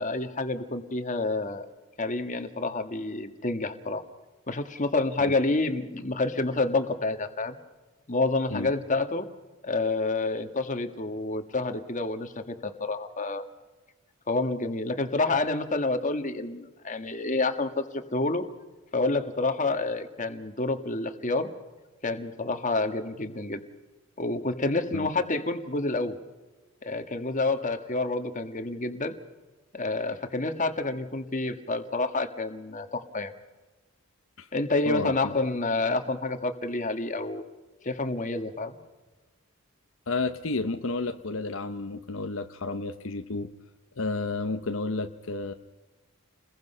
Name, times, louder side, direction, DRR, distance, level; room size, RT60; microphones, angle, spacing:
voice 1, 0.0-1.7 2.0-4.0 4.5-7.6 8.1-9.3 9.6-13.4 14.3-17.8 18.1-18.4 18.9-21.5 22.0-23.6 24.2-26.2 26.8-29.1 29.7-33.3 34.5-37.4 37.8-38.8, left 2 dB, 35° left, 8 dB, 1.6 m, -28 dB
voice 2, 40.1-43.5 44.0-45.5, left 3 dB, 65° left, 7 dB, 0.9 m, -31 dB
29.5 x 21.5 x 5.6 m, 1.2 s
head